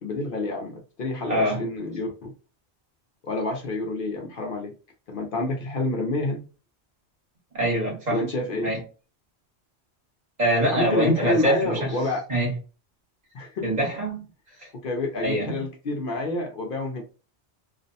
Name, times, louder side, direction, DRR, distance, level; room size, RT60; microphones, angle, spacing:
voice 1, 0.0-2.3 3.2-4.7 5.1-6.4 8.1-8.7 10.7-12.2 13.3-13.7 14.8-17.0, left 2 dB, 60° left, 0.7 m, -28 dB
voice 2, 1.3-1.7 7.5-8.2 8.6-8.8 10.4-12.0 12.3-12.5 13.6-14.3 14.6-14.7 15.2-15.6, right 1 dB, 40° right, 1.2 m, -24 dB
2.5 x 2.1 x 2.6 m
omnidirectional pair, 1.1 m